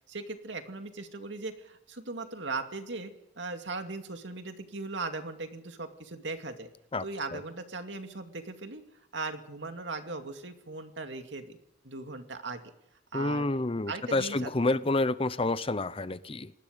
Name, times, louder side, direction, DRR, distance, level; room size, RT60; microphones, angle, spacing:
voice 1, 0.1-6.7 7.0-8.8 9.1-11.6 11.8-12.6 13.1-13.5 13.9-14.8, right 3 dB, 80° right, 6 dB, 2.4 m, -38 dB
voice 2, 13.1-16.5, left 2 dB, 30° left, 15 dB, 0.8 m, -29 dB
26.0 x 19.5 x 5.2 m, 0.81 s
head